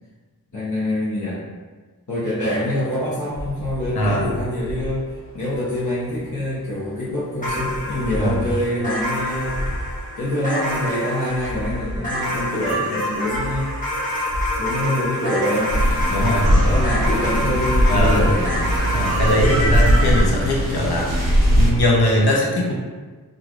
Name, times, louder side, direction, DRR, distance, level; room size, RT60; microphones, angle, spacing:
voice 1, 0.5-1.4 2.1-5.0 5.3-9.6 10.2-13.8 14.6-15.7 16.4-18.5, left 1 dB, 50° left, -10 dB, 1.0 m, -25 dB
sound 1, 2.4-17.0, left 1 dB, 35° left, 0.4 m, -36 dB
voice 2, 4.0-4.3 8.2-8.3 16.1-16.5 17.9-18.3 18.9-21.2 21.5-22.7, left 1 dB, 75° left, -3 dB, 0.7 m, -20 dB
sound 2, 7.4-20.2, equal, 20° left, 1.0 m, -27 dB
sound 3, 15.7-21.7, equal, 40° right, 0.8 m, -19 dB
3.0 x 2.5 x 2.5 m, 1.4 s
wide cardioid pair, 65°, 39 cm